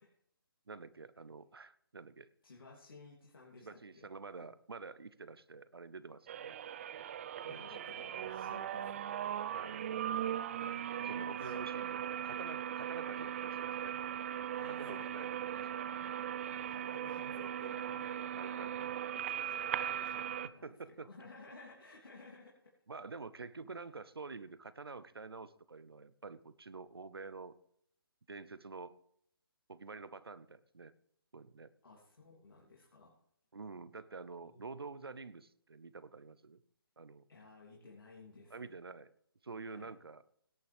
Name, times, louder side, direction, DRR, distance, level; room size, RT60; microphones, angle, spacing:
voice 1, 0.7-2.3 3.6-6.6 7.4-7.8 9.5-9.9 11.0-14.0 14.6-15.9 18.3-19.2 20.4-21.1 22.9-27.6 28.3-28.9 29.7-30.9 31.3-31.7 33.5-36.6 37.0-37.3 38.5-39.1 39.4-40.2, right 4 dB, 75° right, 16 dB, 0.9 m, -48 dB
voice 2, 2.4-4.1 7.4-9.0 11.0-11.8 14.6-15.4 16.5-22.7 31.8-33.2 34.4-34.9 37.3-38.7 39.6-39.9, left 3 dB, 65° left, -3 dB, 3.0 m, -56 dB
sound 1, 6.3-20.5, right 10 dB, 35° right, 0.5 m, -39 dB
17.5 x 9.1 x 3.5 m, 0.69 s
figure-of-eight pair, 140°, 13 cm